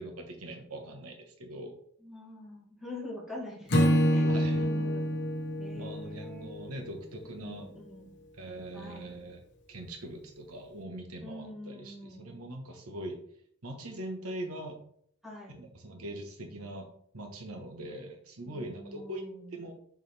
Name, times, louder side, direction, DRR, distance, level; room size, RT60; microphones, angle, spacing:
voice 1, 0.0-1.7 4.3-4.6 5.7-7.7 8.4-9.4 9.7-13.2 13.6-14.8 15.5-16.9 17.1-19.2 19.5-19.7, right 1 dB, 80° right, 3 dB, 1.2 m, -42 dB
voice 2, 2.0-5.1 5.6-6.5 7.4-8.2 8.7-9.2 11.2-12.4 15.2-15.6 18.4-19.6, left 1 dB, ahead, -7 dB, 3.3 m, -45 dB
Acoustic guitar / Strum, 3.7-7.0, equal, 55° left, 1.2 m, -27 dB
6.8 x 6.6 x 3.4 m, 0.65 s
head